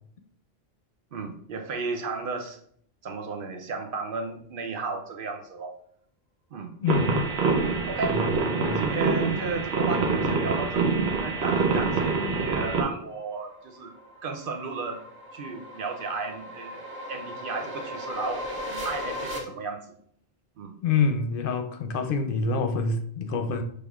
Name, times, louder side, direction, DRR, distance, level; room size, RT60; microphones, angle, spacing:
voice 1, 1.1-2.6 3.0-5.8 6.5-6.7 7.8-8.2 8.8-13.9 14.2-15.0 15.3-16.8 17.1-18.5 18.8-20.0 20.6-20.7, right 4 dB, 60° right, 0.8 m, -34 dB
voice 2, 6.8-7.3 8.0-8.2 8.6-8.8 12.1-12.6 18.7-18.9 20.8-23.6, left 5 dB, 65° left, 0.7 m, -27 dB
sound 1, 6.9-12.8, right 4 dB, 85° right, 1.1 m, -25 dB
sound 2, 13.0-19.4, left 1 dB, 25° right, 0.7 m, -37 dB
6.4 x 3.3 x 2.3 m
omnidirectional pair, 1.1 m